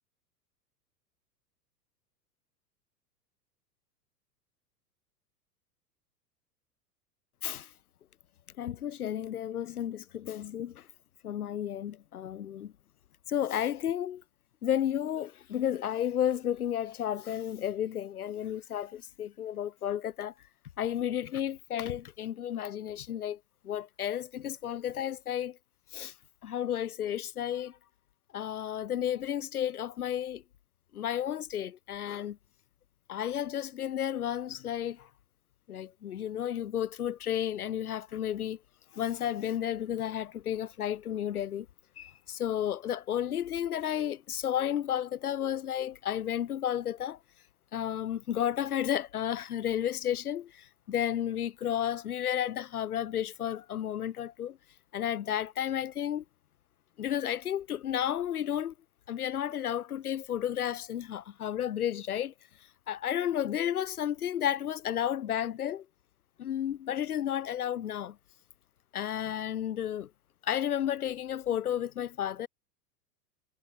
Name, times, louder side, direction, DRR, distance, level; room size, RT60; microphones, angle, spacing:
voice 1, 8.6-10.9 11.2-12.7 13.3-14.2 14.6-20.3 20.8-23.4 23.6-25.6 25.9-26.1 26.4-27.8 28.3-30.4 30.9-32.4 33.1-35.1 35.7-38.6 38.9-41.7 42.0-47.2 47.7-54.6 54.9-56.2 57.0-58.7 59.1-62.3 62.9-65.9 66.4-68.2 68.9-70.1 70.4-72.5, left 10 dB, 60° left, 3.7 m, -32 dB
figure-of-eight pair, 95°, 49 cm